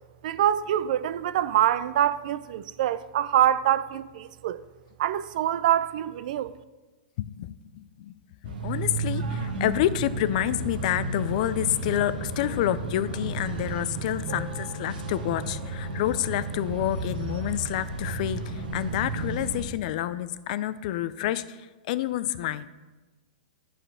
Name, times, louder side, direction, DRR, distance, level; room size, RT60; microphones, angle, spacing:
voice 1, 0.2-4.6 5.0-6.5, right 11 dB, 65° right, 0.4 m, -25 dB
voice 2, 7.2-8.1 8.4-22.7, left 13 dB, 55° left, 0.5 m, -28 dB
sound 1, 8.4-19.6, right 3 dB, 80° right, 1.3 m, -33 dB
8.8 x 5.0 x 5.8 m
hypercardioid pair, 125°, 5 cm